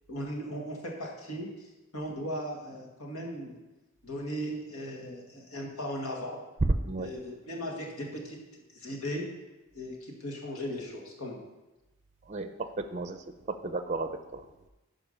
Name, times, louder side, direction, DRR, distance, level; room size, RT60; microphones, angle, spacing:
voice 1, 0.1-1.5 1.9-3.6 4.0-6.4 7.0-9.3 9.8-11.4, equal, 80° left, 0 dB, 2.0 m, -37 dB
voice 2, 12.3-14.4, right 3 dB, 30° right, 8 dB, 0.5 m, -35 dB
12.0 x 5.0 x 5.5 m, 1.0 s
head